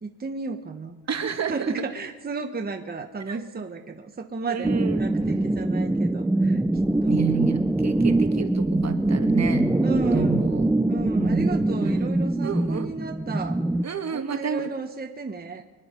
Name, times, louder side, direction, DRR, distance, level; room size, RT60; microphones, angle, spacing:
voice 1, 0.0-1.0 1.5-6.6 7.0-7.1 9.8-10.4 10.9-13.6 14.1-15.6, right 4 dB, 20° right, 4 dB, 1.3 m, -33 dB
voice 2, 1.1-1.7 3.3-3.4 4.5-5.0 7.1-10.7 11.1-11.5 11.8-12.1 12.4-12.9 13.8-14.7, right 6 dB, 35° right, 7 dB, 1.6 m, -30 dB
sound 1, 4.6-13.8, right 2 dB, 5° right, 0.4 m, -23 dB
26.0 x 9.6 x 5.4 m, 1.3 s
cardioid pair, 105°, 44 cm